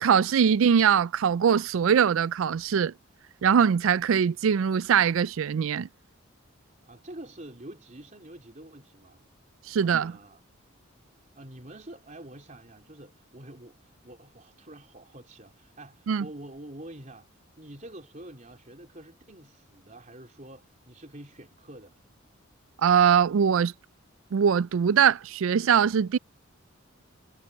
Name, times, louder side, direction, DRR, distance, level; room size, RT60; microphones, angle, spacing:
voice 1, 0.0-2.9 3.4-5.9 9.7-10.1 16.1-16.3 22.8-23.7 24.3-26.2, right 7 dB, 75° right, 0.4 m, -22 dB
voice 2, 6.8-9.3 9.8-10.4 11.4-22.2, right 1 dB, 35° right, 3.9 m, -47 dB
head